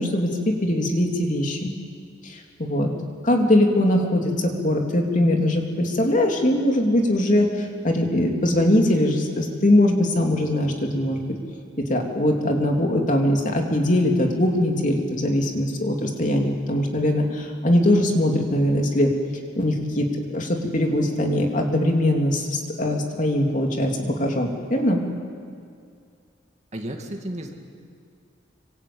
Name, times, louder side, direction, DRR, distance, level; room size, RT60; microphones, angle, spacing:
voice 1, 0.0-1.7 2.2-2.9 3.2-11.2 11.8-19.1 19.6-20.1 20.3-25.0, left 1 dB, 40° left, 1 dB, 3.3 m, -21 dB
voice 2, 26.7-27.5, right 1 dB, 35° right, 3 dB, 2.4 m, -32 dB
26.0 x 25.0 x 8.8 m, 2.3 s
head